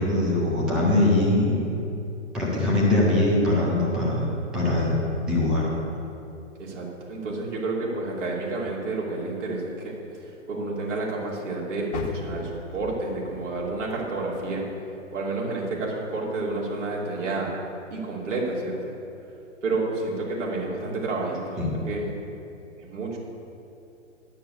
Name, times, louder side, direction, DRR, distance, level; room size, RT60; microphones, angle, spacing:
voice 1, 0.0-1.6 2.3-4.3 4.5-4.9 5.3-5.7 21.6-21.7, left 2 dB, ahead, -5 dB, 0.3 m, -22 dB
voice 2, 6.6-9.9 10.2-14.6 15.1-17.5 17.9-18.9 19.6-22.1 22.8-23.2, right 2 dB, 70° right, -4 dB, 2.9 m, -30 dB
Car, 11.9-15.2 15.6-16.9 17.4-17.5 18.1-18.2, left 3 dB, 40° left, 1.3 m, -40 dB
11.0 x 6.7 x 6.9 m, 2.8 s
hypercardioid pair, 130°, 38 cm